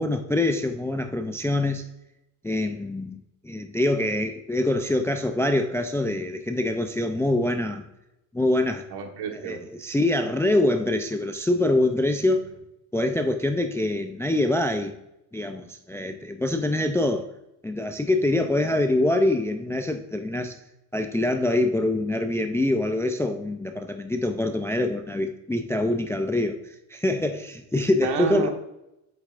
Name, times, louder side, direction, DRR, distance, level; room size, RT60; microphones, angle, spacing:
voice 1, 0.0-1.8 2.4-3.2 3.4-7.8 8.3-8.8 9.3-12.4 12.9-14.9 15.3-17.3 17.6-20.6 20.9-28.5, left 1 dB, 5° left, 6 dB, 0.3 m, -25 dB
voice 2, 8.9-9.7 28.0-28.5, right 7 dB, 65° right, 5 dB, 1.3 m, -30 dB
8.1 x 7.4 x 2.4 m, 0.88 s
cardioid pair, 110°, 42 cm